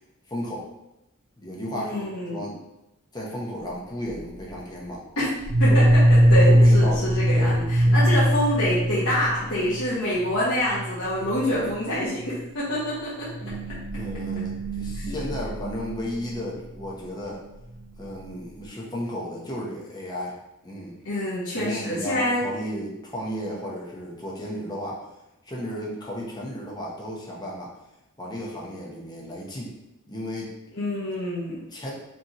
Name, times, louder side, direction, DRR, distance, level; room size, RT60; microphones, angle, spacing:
voice 1, 0.3-0.7 1.4-2.6 3.1-5.0 5.6-5.8 6.4-7.5 7.8-8.0 14.0-17.4 18.0-21.0 21.6-25.0 25.4-27.7 28.2-29.7 30.1-30.6 31.7-31.9, equal, 20° left, -3 dB, 1.0 m, -34 dB
voice 2, 1.7-2.4 5.2-5.3 5.6-5.8 6.1-13.3 15.1-15.2 21.0-22.4 30.7-31.6, equal, 70° left, -9 dB, 1.3 m, -26 dB
sound 1, 4.1-4.5 5.4-9.9 10.2-10.4 10.7-11.0 11.2-11.5 12.2-12.3 13.3-16.4, equal, 75° right, 0.6 m, -21 dB
5.1 x 3.4 x 3.0 m, 0.89 s
head